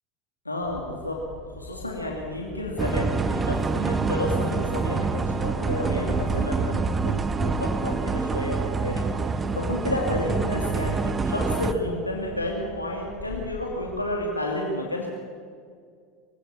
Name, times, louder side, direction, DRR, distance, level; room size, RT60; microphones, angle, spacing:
voice 1, 0.4-1.2 1.4-15.1, left 1 dB, 85° left, -1 dB, 2.7 m, -31 dB
sound 1, 0.6-14.3, left 3 dB, 15° left, 2.8 m, -43 dB
sound 2, 2.8-11.7, right 4 dB, 20° right, 1.1 m, -26 dB
Piano, 7.3-11.1, right 6 dB, 55° right, 4.5 m, -47 dB
24.0 x 17.0 x 7.3 m, 2.1 s
figure-of-eight pair, 75°, 0 cm